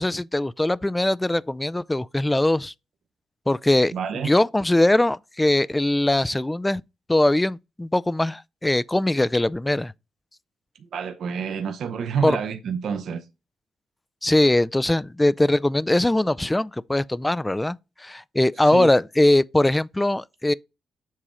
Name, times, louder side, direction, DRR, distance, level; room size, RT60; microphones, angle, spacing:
voice 1, 0.0-2.7 3.5-6.8 7.1-9.9 12.2-12.4 14.2-20.5, left 1 dB, 15° left, 0.4 m, -21 dB
voice 2, 3.9-4.3 10.9-13.2 18.6-18.9, right 6 dB, 70° right, 0.7 m, -28 dB
7.4 x 2.9 x 4.8 m
supercardioid pair, 55°, 0 cm